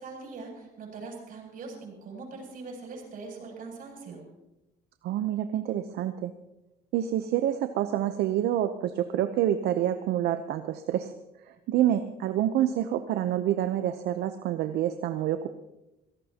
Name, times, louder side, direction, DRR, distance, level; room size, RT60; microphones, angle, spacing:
voice 1, 0.0-4.2, right 4 dB, 55° right, 0 dB, 7.6 m, -42 dB
voice 2, 5.0-6.3 6.9-11.1 11.7-15.5, right 11 dB, 75° right, 9 dB, 0.8 m, -27 dB
23.0 x 17.5 x 2.9 m, 0.95 s
cardioid pair, 110°, 17 cm